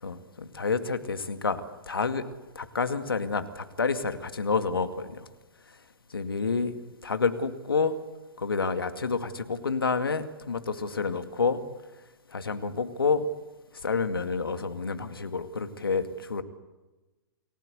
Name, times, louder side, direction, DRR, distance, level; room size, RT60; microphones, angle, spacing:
voice 1, 0.0-2.3 2.6-5.3 6.1-6.7 7.0-8.0 8.4-11.6 12.3-13.3 13.8-16.4, left 4 dB, 80° left, 2.2 m, -29 dB
29.0 x 20.5 x 8.2 m
figure-of-eight pair, 115°, 12 cm